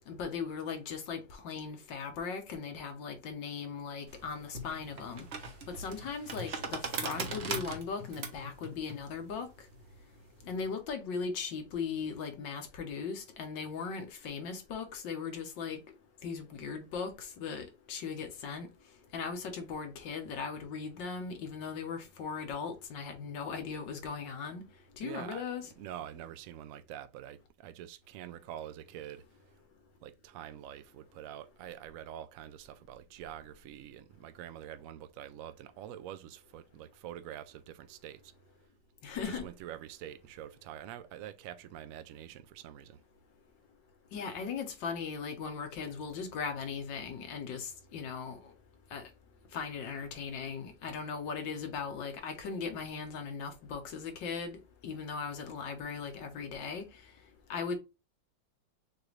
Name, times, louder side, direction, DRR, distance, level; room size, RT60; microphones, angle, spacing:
voice 1, 0.1-5.3 5.7-9.5 10.5-15.8 16.2-18.7 19.1-24.6 25.0-25.7 39.0-39.4 44.1-48.4 48.9-49.0 49.5-54.6 54.8-56.9 57.5-57.8, left 5 dB, 80° left, 1.7 m, -38 dB
sound 1, 4.1-10.7, right 3 dB, 45° right, 1.0 m, -40 dB
voice 2, 25.0-25.4 25.8-29.3 30.0-38.3 39.2-43.0, right 11 dB, 75° right, 0.8 m, -46 dB
6.6 x 2.5 x 3.2 m
omnidirectional pair, 1.9 m